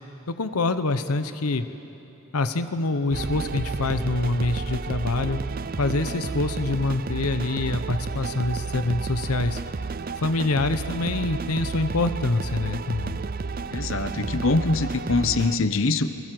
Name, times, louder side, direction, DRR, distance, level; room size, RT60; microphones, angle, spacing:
voice 1, 0.3-1.7 2.3-5.4 5.8-9.6 10.2-13.2, left 2 dB, 85° left, 10 dB, 0.9 m, -25 dB
sound 1, 3.1-15.6, right 4 dB, 40° right, 0.5 m, -31 dB
voice 2, 13.7-16.2, left 3 dB, 60° left, 10 dB, 0.9 m, -24 dB
28.0 x 21.0 x 7.7 m, 2.9 s
head